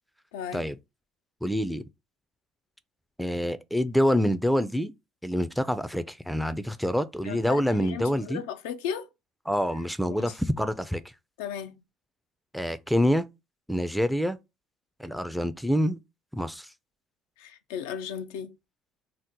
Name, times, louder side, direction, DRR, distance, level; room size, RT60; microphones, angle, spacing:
voice 1, 0.3-0.6 7.2-9.1 10.1-10.2 11.4-11.7 17.4-18.5, left 8 dB, 90° left, 0.3 m, -35 dB
voice 2, 1.4-1.8 3.2-4.9 5.2-8.4 9.5-11.0 12.5-13.3 13.7-14.4 15.0-16.0 16.3-16.7, equal, ahead, 0.4 m, -26 dB
2.8 x 2.0 x 3.6 m
supercardioid pair, 75°, 0 cm